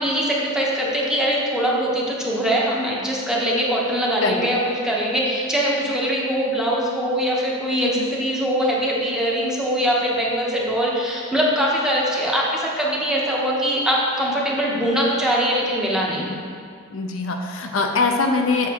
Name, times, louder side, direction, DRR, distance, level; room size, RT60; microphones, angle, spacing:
voice 1, 0.0-4.6 4.8-16.3, equal, 5° right, -4 dB, 0.9 m, -22 dB
voice 2, 7.8-8.1 16.9-18.7, left 3 dB, 65° left, 3 dB, 0.5 m, -22 dB
7.2 x 6.0 x 2.9 m, 2.2 s
head